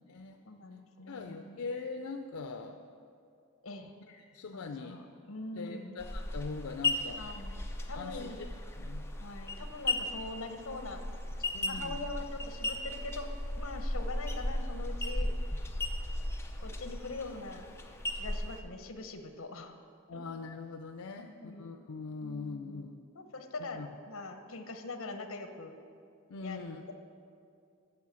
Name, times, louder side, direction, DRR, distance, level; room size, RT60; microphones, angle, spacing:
voice 1, 0.4-1.6 3.6-3.9 4.5-6.0 7.2-7.6 7.9-8.4 9.2-11.0 11.7-13.3 13.6-15.3 16.6-17.7 18.1-19.7 20.1-20.2 21.2-21.7 22.2-25.8 26.4-26.6 26.9-27.0, left 2 dB, 65° left, 6 dB, 1.0 m, -43 dB
voice 2, 1.1-2.8 4.1-5.0 5.6-7.2 7.9-8.5 8.7-9.0 11.5-12.0 20.1-23.0 23.7-23.9 26.3-26.9, left 4 dB, 80° left, 6 dB, 0.5 m, -42 dB
sound 1, 6.0-18.6, left 1 dB, 10° left, 0.6 m, -36 dB
9.5 x 6.9 x 7.5 m, 2.5 s
head